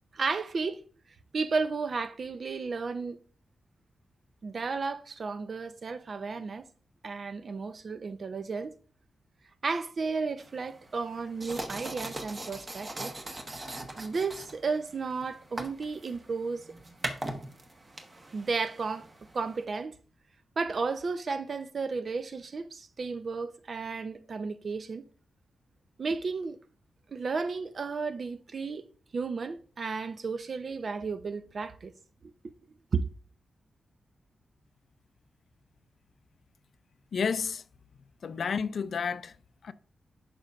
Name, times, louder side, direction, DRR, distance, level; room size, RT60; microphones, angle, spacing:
voice 1, 0.1-0.8 1.3-3.2 4.4-6.7 7.0-8.7 9.6-13.1 13.9-16.6 18.3-19.1 19.3-19.9 20.6-25.0 26.0-26.6 27.1-28.9 29.1-31.9 32.2-32.3 32.9-33.1, right 4 dB, 45° right, 0.5 m, -33 dB
sound 1, 10.4-19.6, right 2 dB, 30° right, 1.0 m, -41 dB
voice 2, 37.1-37.6 38.2-39.4 39.6-39.7, left 6 dB, 60° left, 0.4 m, -31 dB
11.0 x 5.2 x 2.4 m
wide cardioid pair, 135°, 0 cm